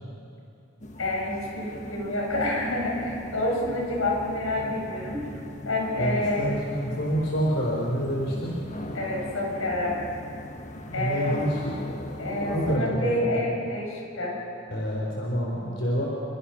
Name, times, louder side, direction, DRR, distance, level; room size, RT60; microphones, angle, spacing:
sound 1, 0.8-12.8, left 1 dB, 35° left, 1.4 m, -39 dB
voice 1, 1.0-6.5 8.9-10.1 10.9-11.4 12.2-14.4, left 1 dB, 90° left, -1 dB, 7.1 m, -28 dB
voice 2, 6.0-8.6 10.9-12.1 12.4-13.3 14.7-16.0, equal, 60° left, -2 dB, 4.2 m, -28 dB
28.5 x 25.0 x 5.9 m, 2.7 s
head